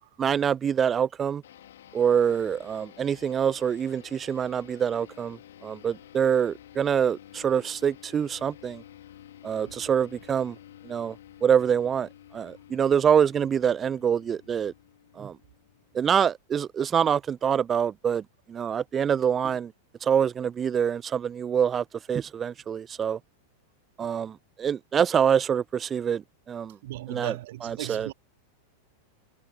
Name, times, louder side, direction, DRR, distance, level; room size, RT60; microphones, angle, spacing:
voice 1, 0.2-1.4 1.9-8.8 9.4-10.6 10.8-11.2 11.4-14.7 15.2-15.4 15.9-18.2 18.5-19.7 20.0-23.2 24.0-26.8 27.1-27.3 27.6-28.1, right 8 dB, 25° right, 0.3 m, -25 dB
sound 1, 1.4-16.2, left 12 dB, 60° left, 4.1 m, -51 dB
voice 2, 26.8-28.1, right 16 dB, 55° right, 2.5 m, -37 dB
figure-of-eight pair, 90°, 0 cm